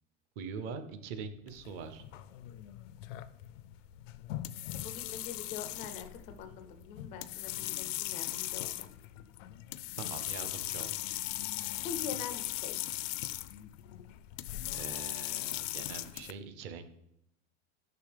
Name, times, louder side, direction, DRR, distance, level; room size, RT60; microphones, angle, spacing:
voice 1, 0.4-2.0 10.0-11.0 14.7-16.9, right 5 dB, 35° right, 10 dB, 0.6 m, -43 dB
sound 1, 1.5-16.3, left 15 dB, 85° left, 0.5 m, -39 dB
voice 2, 4.7-8.9 11.8-12.8, left 6 dB, 20° left, 8 dB, 0.3 m, -44 dB
6.8 x 5.8 x 3.3 m, 0.80 s
supercardioid pair, 160°, 37 cm